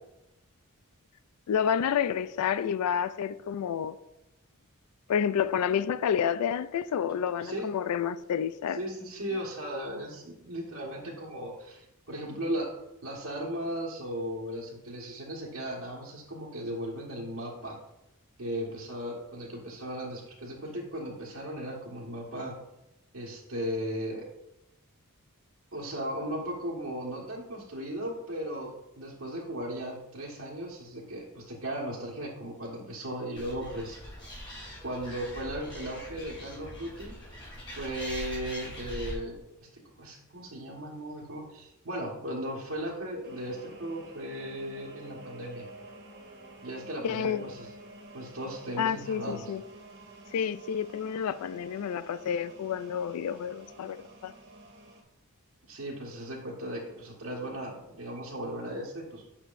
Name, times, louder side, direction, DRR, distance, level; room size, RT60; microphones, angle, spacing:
voice 1, 1.5-4.0 5.1-8.8 47.0-47.5 48.8-49.6 50.3-54.0 54.2-54.3, left 8 dB, 90° left, 0.3 m, -29 dB
voice 2, 8.7-12.7 13.0-17.7 18.4-22.5 23.1-24.3 25.7-34.0 34.8-37.4 37.7-39.4 39.7-45.7 46.6-47.7 48.1-49.4 55.6-59.3, equal, 75° right, 1.6 m, -36 dB
Animal, 33.4-39.2, equal, 20° left, 2.9 m, -42 dB
sound 1, 43.2-55.0, right 2 dB, 50° right, 1.5 m, -49 dB
8.9 x 6.5 x 2.6 m
head